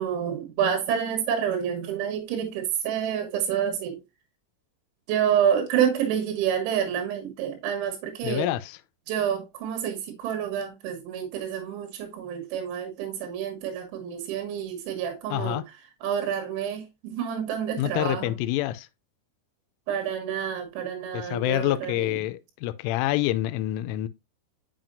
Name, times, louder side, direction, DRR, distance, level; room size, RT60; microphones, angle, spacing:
voice 1, 0.0-4.0 5.1-8.5 9.1-15.6 16.0-18.4 19.9-22.2, right 8 dB, 75° right, 3.7 m, -28 dB
voice 2, 8.2-8.8 15.3-15.6 17.8-18.9 21.1-24.1, left 15 dB, 85° left, 3.0 m, -27 dB
7.4 x 5.4 x 2.6 m
omnidirectional pair, 5.6 m